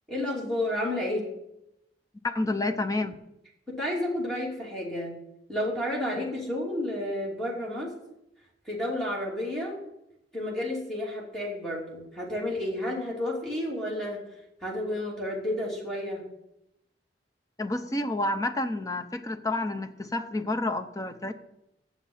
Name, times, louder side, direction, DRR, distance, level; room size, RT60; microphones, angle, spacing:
voice 1, 0.1-1.3 3.7-5.1 5.5-7.9 8.7-9.8 10.3-14.2 14.6-16.2, left 1 dB, 5° left, -4 dB, 2.9 m, -31 dB
voice 2, 2.2-3.2 6.2-6.3 17.6-21.3, left 2 dB, 20° left, 8 dB, 0.7 m, -29 dB
7.5 x 7.2 x 8.4 m, 0.87 s
head